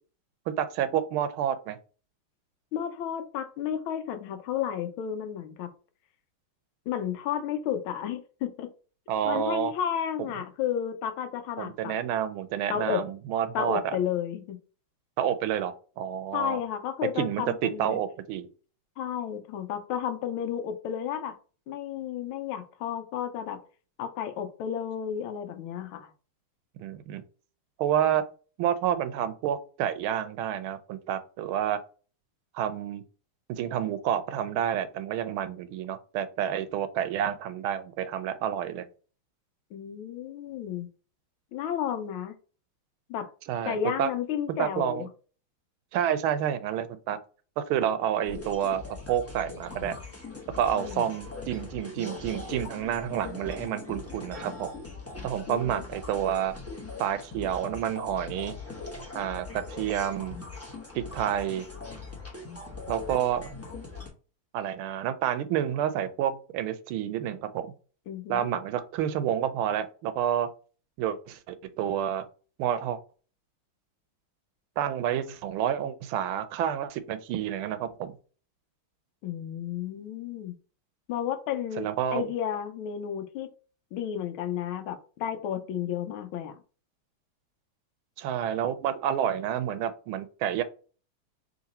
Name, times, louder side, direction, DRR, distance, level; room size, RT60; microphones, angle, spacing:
voice 1, 0.5-1.8 9.1-9.7 11.6-13.8 15.2-16.6 17.2-18.5 26.8-27.2 27.8-28.2 28.6-31.8 32.5-33.0 33.6-38.9 43.5-44.1 44.6-45.1 45.9-47.2 47.6-50.0 50.5-54.7 55.2-56.5 57.0-58.6 59.1-60.4 60.9-61.7 62.9-63.5 64.5-67.7 68.3-70.5 71.0-72.2 72.6-73.0 74.8-78.1 81.8-82.2 88.2-90.6, right 10 dB, 80° right, 11 dB, 1.4 m, -29 dB
voice 2, 2.7-5.7 6.9-8.7 9.2-11.9 12.7-13.0 13.5-14.6 16.3-18.0 19.0-21.3 21.7-23.6 24.0-26.1 39.7-40.9 41.5-42.4 43.1-43.3 43.6-45.1 50.7-51.1 55.5-55.8 68.1-68.5 79.2-80.5 81.1-83.5 83.9-86.5, left 9 dB, 80° left, 8 dB, 1.4 m, -32 dB
sound 1, 48.2-64.1, left 3 dB, 20° left, 0.4 m, -41 dB
3.8 x 2.9 x 4.0 m, 0.38 s
omnidirectional pair, 2.3 m